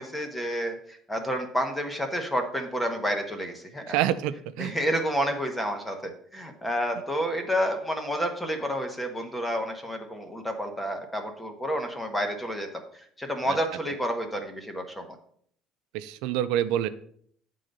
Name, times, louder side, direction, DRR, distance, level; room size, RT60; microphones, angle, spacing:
voice 1, 0.0-4.0 4.6-12.7 13.2-15.0, equal, 5° left, 5 dB, 1.0 m, -30 dB
voice 2, 3.9-4.7 13.5-13.6 15.9-16.9, right 12 dB, 85° right, 11 dB, 0.5 m, -27 dB
9.1 x 3.8 x 6.5 m, 0.63 s
cardioid pair, 170°, 0 cm